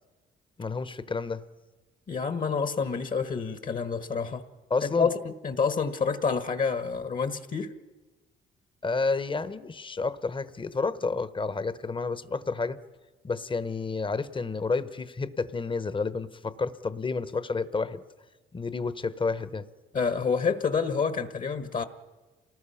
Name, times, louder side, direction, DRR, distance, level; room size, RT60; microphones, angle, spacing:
voice 1, 0.6-1.4 4.7-5.1 8.8-12.8 13.2-18.0 18.5-19.7, left 4 dB, 25° left, 14 dB, 1.1 m, -30 dB
voice 2, 2.1-4.4 4.8-7.7 19.9-21.8, left 5 dB, 45° left, 10 dB, 1.4 m, -28 dB
28.0 x 19.0 x 5.8 m, 1.2 s
cardioid pair, 90°, 20 cm